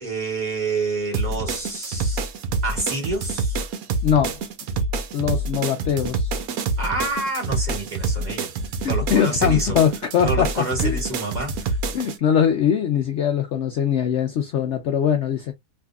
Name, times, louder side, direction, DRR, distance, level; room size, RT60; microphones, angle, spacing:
voice 1, 0.0-2.2 2.6-3.7 6.8-8.5 8.8-9.8 10.2-11.8, right 2 dB, 25° right, 1.7 m, -28 dB
sound 1, 1.1-12.2, right 3 dB, 65° right, 1.0 m, -27 dB
voice 2, 4.0-4.4 5.1-6.3 8.8-10.5 10.8-11.0 11.9-15.5, left 8 dB, 80° left, 0.6 m, -21 dB
3.5 x 2.7 x 2.3 m
omnidirectional pair, 1.8 m